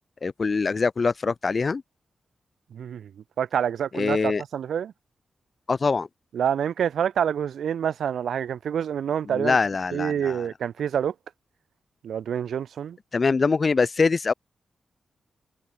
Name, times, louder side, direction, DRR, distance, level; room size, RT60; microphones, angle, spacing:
voice 1, 0.2-1.8 3.9-4.4 5.7-6.1 9.3-10.5 13.1-14.3, left 4 dB, 35° left, 1.0 m, -23 dB
voice 2, 2.7-3.1 3.4-4.9 6.3-9.6 9.9-11.1 12.0-13.0, right 8 dB, 90° right, 0.6 m, -27 dB
wide cardioid pair, 160°, 0 cm